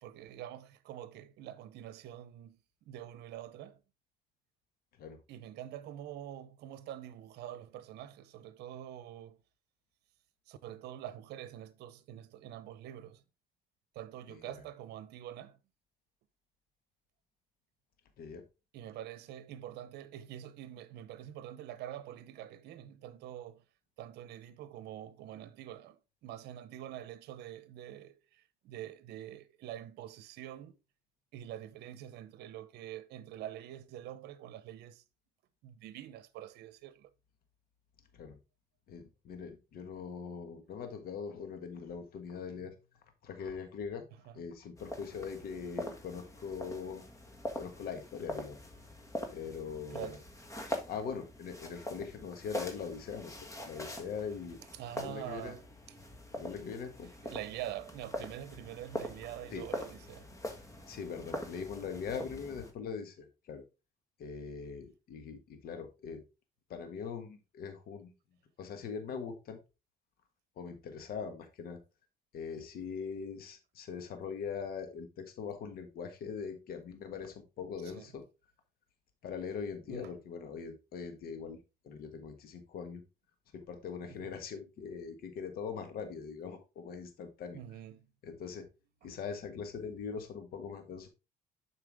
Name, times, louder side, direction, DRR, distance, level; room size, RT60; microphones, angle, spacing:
voice 1, 0.0-3.8 5.3-9.4 10.5-13.2 13.9-15.6 18.7-23.6 24.0-30.7 31.3-35.0 35.6-37.1 44.1-44.4 49.9-50.3 54.7-55.7 57.2-60.3 77.8-78.2 79.9-80.2 84.0-84.4 87.5-88.1 89.0-89.2, right 11 dB, 75° right, 0.8 m, -46 dB
voice 2, 38.9-42.7 43.2-44.1 44.3-47.0 47.5-48.6 49.3-50.1 50.9-53.4 53.6-54.6 55.0-55.6 56.4-57.1 59.5-59.6 60.9-63.6 64.2-66.2 66.7-68.1 68.6-69.6 70.6-71.8 72.3-78.2 79.2-81.6 81.8-83.0 83.5-87.6 88.2-88.7 89.0-91.1, left 6 dB, 65° left, 1.5 m, -41 dB
sound 1, 44.8-62.7, left 1 dB, 20° left, 1.6 m, -43 dB
7.4 x 5.6 x 3.5 m
cardioid pair, 110°, 17 cm